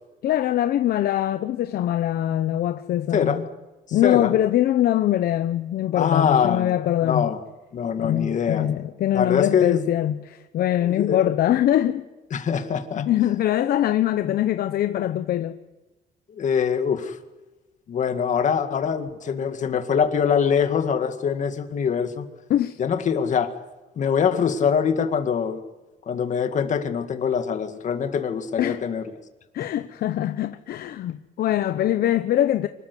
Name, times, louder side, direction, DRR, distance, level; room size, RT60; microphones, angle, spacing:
voice 1, 0.2-3.4 3.9-7.3 8.0-12.0 13.0-15.6 22.5-22.8 28.6-28.8 29.5-32.7, left 12 dB, 65° left, 0.8 m, -23 dB
voice 2, 3.1-3.5 3.9-4.3 5.9-6.7 7.0-7.4 7.7-8.6 9.1-9.8 10.8-11.2 12.3-13.1 16.3-17.2 17.9-22.3 22.8-23.5 24.0-25.6 26.1-29.1, left 7 dB, 45° left, 2.0 m, -23 dB
25.0 x 13.5 x 9.6 m
cardioid pair, 125°, 17 cm